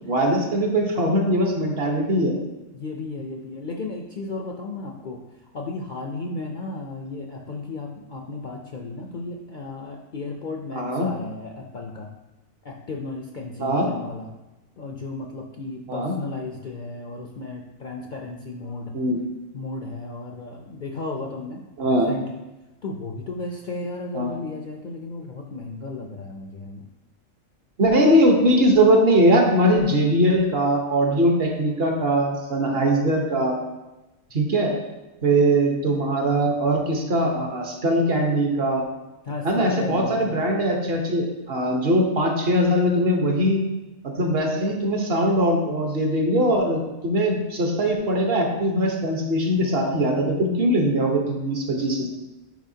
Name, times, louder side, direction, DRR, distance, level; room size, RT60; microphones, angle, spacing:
voice 1, 0.0-2.3 10.7-11.1 13.6-13.9 15.9-16.1 18.9-19.2 21.8-22.1 24.1-24.3 27.8-33.6 34.3-34.7 35.2-38.8 39.4-43.6 44.0-52.1, right 1 dB, 50° right, 1 dB, 1.2 m, -21 dB
voice 2, 2.7-5.2 5.5-12.1 12.6-14.3 14.8-18.9 19.5-22.4 22.8-26.9 39.2-40.4, left 3 dB, 55° left, 1 dB, 0.6 m, -34 dB
9.2 x 4.8 x 2.7 m, 1.0 s
omnidirectional pair, 1.3 m